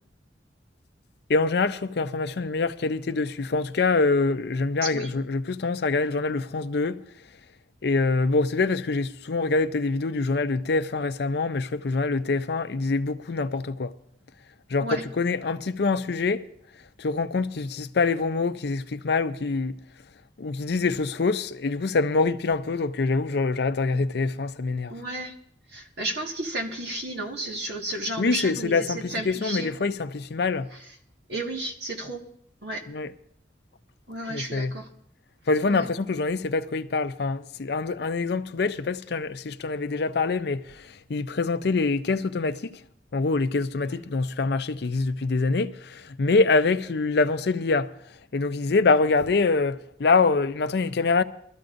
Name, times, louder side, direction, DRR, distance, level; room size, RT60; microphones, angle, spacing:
voice 1, 1.3-7.0 7.8-13.9 14.7-16.5 17.0-19.8 20.4-24.9 27.9-30.7 32.9-33.1 34.3-34.8 35.5-42.8 43.1-51.2, left 3 dB, 65° left, 0.5 m, -25 dB
voice 2, 24.9-25.3 25.7-29.7 31.3-32.2 32.6-32.8 34.1-34.9 35.7-35.8, right 1 dB, 65° right, 1.7 m, -32 dB
22.5 x 13.0 x 2.6 m
head